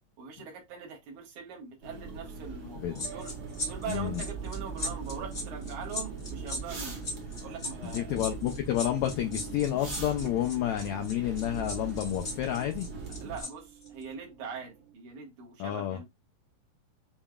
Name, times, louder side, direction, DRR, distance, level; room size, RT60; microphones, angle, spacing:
voice 1, 0.2-3.3 3.7-7.0 7.4-8.2 13.2-16.0, right 6 dB, 70° right, 2.7 m, -42 dB
sound 1, 1.8-13.4, right 3 dB, 45° right, 1.3 m, -41 dB
voice 2, 2.8-3.1 3.9-4.2 7.9-12.9 15.6-16.0, left 12 dB, 80° left, 1.6 m, -30 dB
sound 2, 2.9-13.5 13.8-14.0, left 2 dB, 35° left, 0.8 m, -38 dB
sound 3, 3.0-14.9, right 9 dB, 85° right, 2.5 m, -46 dB
7.0 x 3.1 x 2.3 m
omnidirectional pair, 3.8 m